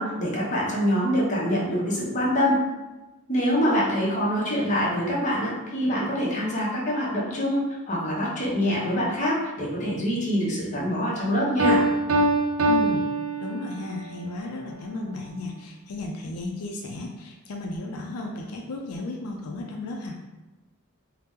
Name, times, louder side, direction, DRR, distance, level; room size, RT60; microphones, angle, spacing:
voice 1, 0.0-2.6 3.3-11.8, equal, 35° left, -5 dB, 0.8 m, -25 dB
Piano, 11.6-14.1, right 1 dB, 75° right, 0.5 m, -23 dB
voice 2, 12.7-13.1 13.4-20.2, left 2 dB, 85° left, 1 dB, 0.4 m, -34 dB
2.8 x 2.0 x 3.5 m, 1.1 s
head